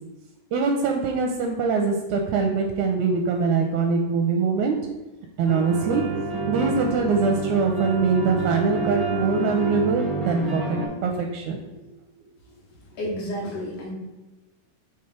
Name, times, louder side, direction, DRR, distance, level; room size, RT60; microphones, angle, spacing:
voice 1, 0.5-4.8 5.4-6.0 6.5-11.6, right 4 dB, 80° right, 3 dB, 1.7 m, -23 dB
sound 1, 5.4-10.9, right 3 dB, 35° right, 0.3 m, -28 dB
voice 2, 13.0-13.9, equal, 70° left, -5 dB, 3.1 m, -30 dB
6.5 x 3.6 x 4.3 m, 1.1 s
omnidirectional pair, 3.7 m